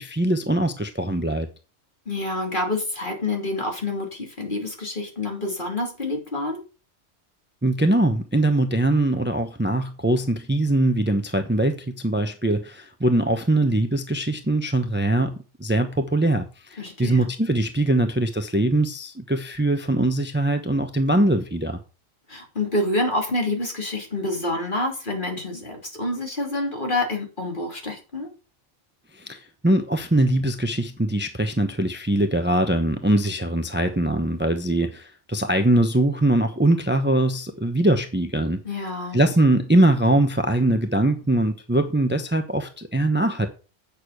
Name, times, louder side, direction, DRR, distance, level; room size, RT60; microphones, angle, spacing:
voice 1, 0.0-1.5 7.6-21.8 29.1-38.6 39.1-43.5, right 1 dB, 10° right, 0.9 m, -22 dB
voice 2, 2.1-6.6 16.8-17.3 22.3-28.3 38.6-39.2, left 2 dB, 45° left, 3.1 m, -27 dB
8.8 x 6.7 x 6.5 m
omnidirectional pair, 1.2 m